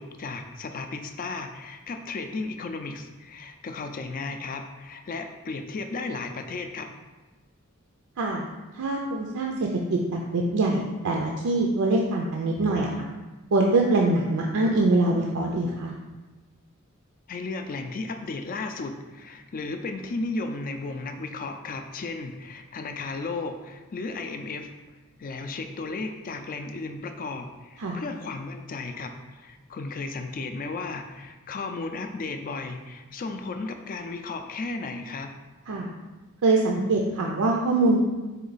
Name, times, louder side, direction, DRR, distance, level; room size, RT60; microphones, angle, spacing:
voice 1, 0.0-6.9 17.3-24.7 25.2-35.3, left 3 dB, 40° left, 6 dB, 0.4 m, -34 dB
voice 2, 8.7-9.5 9.9-13.1 13.5-15.9 27.8-28.0 35.7-35.9 36.4-38.0, right 2 dB, 80° right, 0 dB, 0.5 m, -24 dB
4.5 x 3.0 x 4.0 m, 1.2 s
head